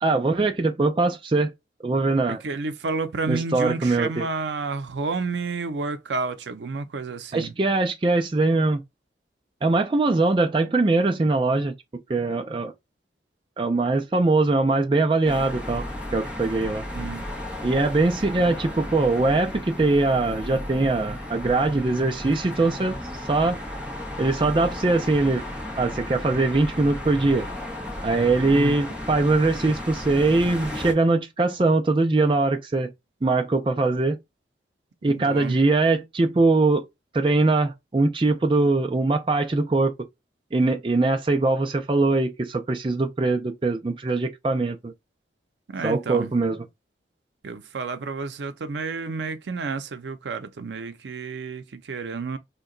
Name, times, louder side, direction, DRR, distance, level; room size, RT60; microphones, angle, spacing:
voice 1, 0.0-1.5 1.8-2.4 3.3-4.3 7.3-8.8 9.6-11.7 12.1-12.7 13.6-15.8 16.1-16.8 17.6-23.0 23.3-23.6 24.2-25.4 25.8-27.5 28.0-32.9 33.2-34.2 35.0-36.8 37.1-39.9 40.5-44.9 45.8-46.7, right 3 dB, 30° right, 0.4 m, -22 dB
voice 2, 2.3-7.5 16.9-17.2 28.5-28.8 35.1-35.6 45.7-46.3 47.4-52.4, right 4 dB, 85° right, 0.5 m, -30 dB
sound 1, 15.2-30.9, left 1 dB, 5° right, 0.8 m, -34 dB
2.8 x 2.2 x 3.7 m
head